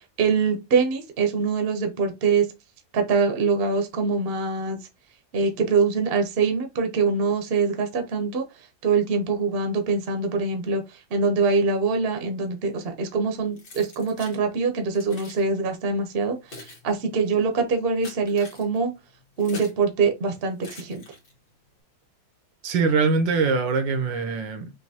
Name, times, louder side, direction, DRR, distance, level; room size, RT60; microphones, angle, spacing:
voice 1, 0.2-2.5 2.9-4.8 5.3-8.4 8.8-10.8 11.1-16.4 16.8-18.9 19.4-21.0, right 4 dB, 45° right, 0.9 m, -23 dB
Keys jangling, 13.6-14.4 14.9-15.4 16.1-19.8 20.6-21.5, left 2 dB, 85° left, 2.4 m, -44 dB
voice 2, 22.6-24.7, right 4 dB, 75° right, 1.5 m, -23 dB
5.9 x 2.7 x 2.8 m
omnidirectional pair, 2.0 m